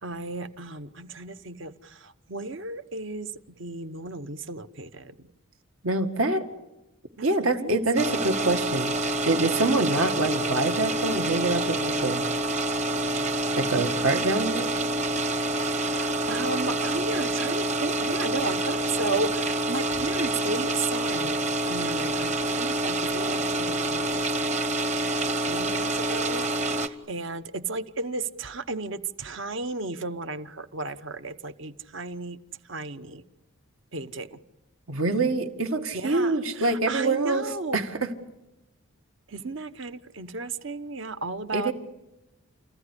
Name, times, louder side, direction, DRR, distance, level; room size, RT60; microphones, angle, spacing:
voice 1, 0.0-3.3 3.6-5.3 7.2-7.7 15.9-21.4 21.7-24.2 25.4-32.4 32.7-33.2 33.9-34.4 35.9-37.8 39.3-41.7, right 3 dB, 60° right, 11 dB, 1.0 m, -34 dB
voice 2, 5.8-6.5 7.2-8.9 9.3-12.2 13.6-14.7 34.9-37.5 37.7-38.1 41.5-41.7, right 2 dB, 80° right, 6 dB, 2.1 m, -25 dB
sound 1, 8.0-26.9, right 2 dB, 35° right, 1.1 m, -27 dB
30.0 x 15.0 x 9.9 m, 0.98 s
head